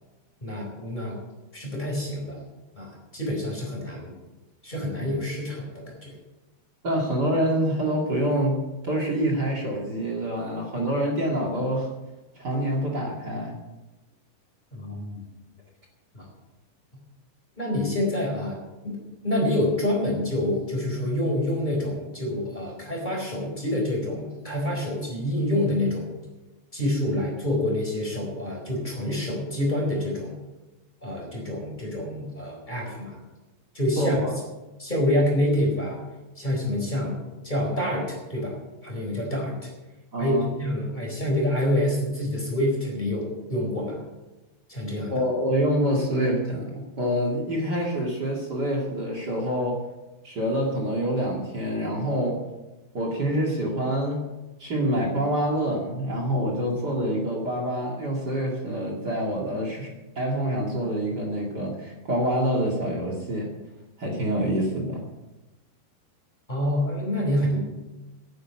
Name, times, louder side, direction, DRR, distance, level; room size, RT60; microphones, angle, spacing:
voice 1, 0.4-1.2 1.5-2.4 2.8-4.1 4.6-6.2 14.7-15.2 16.1-16.3 17.6-19.0 19.2-26.1 26.7-30.3 31.0-33.2 33.7-34.2 34.8-36.0 36.4-38.6 38.8-39.7 40.2-44.0 44.7-45.1 66.5-67.6, left 1 dB, 10° left, -1 dB, 3.9 m, -27 dB
voice 2, 6.8-11.9 12.4-13.5 34.0-34.3 40.1-40.5 45.1-49.8 50.2-52.4 52.9-54.3 54.6-59.9 60.2-63.5 64.0-65.0, equal, 35° right, 0 dB, 1.8 m, -26 dB
11.5 x 9.4 x 8.5 m, 1.1 s
omnidirectional pair, 4.7 m